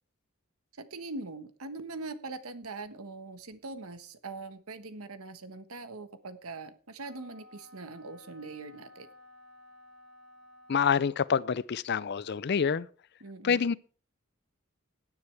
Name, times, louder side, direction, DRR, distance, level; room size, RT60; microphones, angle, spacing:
voice 1, 0.8-9.1 13.2-13.7, right 3 dB, 85° right, 1.4 m, -42 dB
Wind instrument woodwind instrument, 7.0-11.3, left 1 dB, 5° left, 7.1 m, -55 dB
voice 2, 10.7-12.9 13.4-13.7, left 6 dB, 50° left, 0.4 m, -27 dB
17.5 x 9.8 x 3.4 m
head